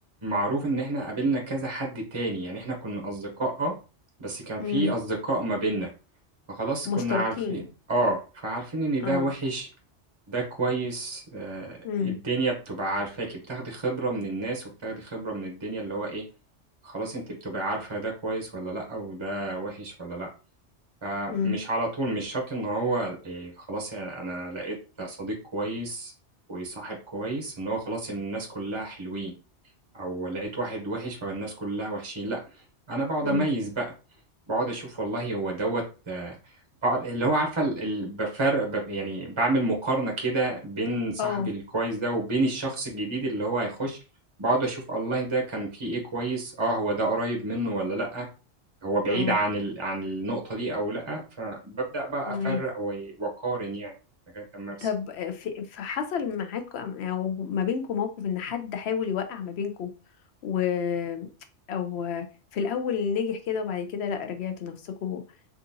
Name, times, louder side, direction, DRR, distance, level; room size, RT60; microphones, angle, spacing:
voice 1, 0.2-3.7 4.2-5.9 6.5-7.6 7.9-9.7 10.3-16.2 16.8-20.3 21.0-26.1 26.5-29.3 29.9-32.4 32.9-33.9 34.5-36.3 36.8-44.0 44.4-48.3 48.8-53.9 54.3-54.9, right 2 dB, 30° right, 0 dB, 0.7 m, -29 dB
voice 2, 4.6-4.9 6.9-7.6 9.0-9.3 11.8-12.2 21.3-21.6 33.2-33.5 41.2-41.5 49.1-49.4 52.3-52.6 54.8-59.9 60.4-61.3 61.7-62.3 62.5-65.2, left 7 dB, 65° left, 7 dB, 0.8 m, -29 dB
3.7 x 2.5 x 2.7 m, 0.34 s
omnidirectional pair, 1.2 m